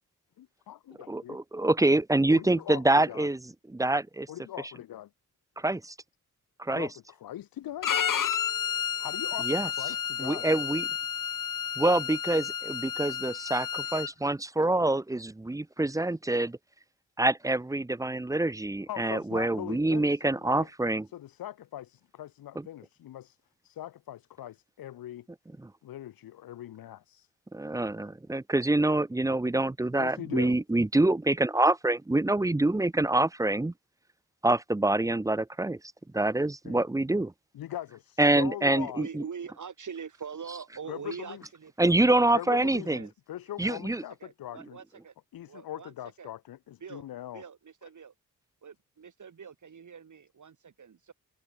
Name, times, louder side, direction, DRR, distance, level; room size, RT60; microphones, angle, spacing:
voice 1, 0.4-1.4 2.3-3.3 4.3-5.1 6.7-7.9 9.0-10.5 18.9-20.7 21.1-23.4 23.6-25.3 25.8-27.3 30.0-30.6 36.6-36.8 37.5-39.0 40.9-41.4 42.3-44.8 45.3-47.4, left 12 dB, 85° left, 2.7 m, -41 dB
voice 2, 1.1-4.3 5.6-5.9 6.6-6.9 9.4-9.7 10.2-10.9 11.8-16.6 17.2-21.1 22.6-22.7 25.6-25.7 27.5-33.7 34.4-35.8 36.1-37.3 38.2-39.2 41.8-43.1 43.6-44.0, right 2 dB, 10° right, 0.6 m, -26 dB
Bowed string instrument, 7.8-14.1, left 8 dB, 65° left, 3.0 m, -31 dB
voice 3, 38.8-43.1 43.6-45.1 45.5-46.3 46.8-47.1 47.3-48.1 48.6-51.1, right 6 dB, 60° right, 5.8 m, -44 dB
cardioid pair, 55°, 34 cm